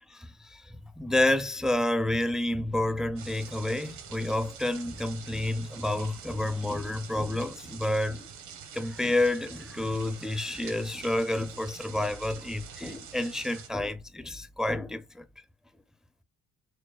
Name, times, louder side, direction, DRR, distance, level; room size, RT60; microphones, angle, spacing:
voice 1, 0.1-8.3 8.7-15.2, left 1 dB, ahead, 0.5 m, -29 dB
sound 1, 3.2-13.7, right 7 dB, 75° right, 1.1 m, -46 dB
6.4 x 2.1 x 2.3 m
cardioid pair, 90°, 30 cm